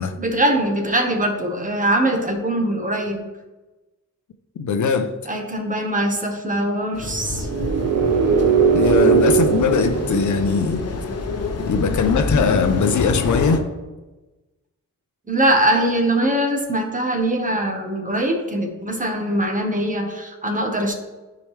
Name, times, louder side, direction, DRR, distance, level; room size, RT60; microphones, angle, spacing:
voice 1, 0.2-3.3 5.3-7.5 15.3-20.9, right 1 dB, 25° right, 1.3 m, -22 dB
voice 2, 4.6-5.2 8.7-10.9 11.6-13.7, left 5 dB, 70° left, 0.7 m, -20 dB
sound 1, 6.9-13.6, left 3 dB, 55° left, 1.0 m, -27 dB
sound 2, 7.4-11.2, right 6 dB, 75° right, 0.9 m, -19 dB
12.0 x 4.9 x 3.3 m
wide cardioid pair, 110°, 31 cm